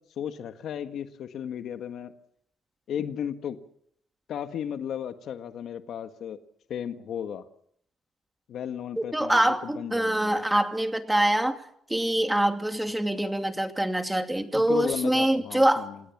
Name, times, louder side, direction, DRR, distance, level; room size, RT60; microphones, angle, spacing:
voice 1, 0.2-2.1 2.9-3.6 4.3-6.4 6.7-7.4 8.5-10.4 14.5-16.0, left 9 dB, 70° left, 8 dB, 1.7 m, -34 dB
voice 2, 9.0-11.6 11.9-15.9, right 1 dB, 10° right, 6 dB, 2.6 m, -25 dB
28.0 x 18.0 x 7.5 m, 0.70 s
cardioid pair, 90°, 0 cm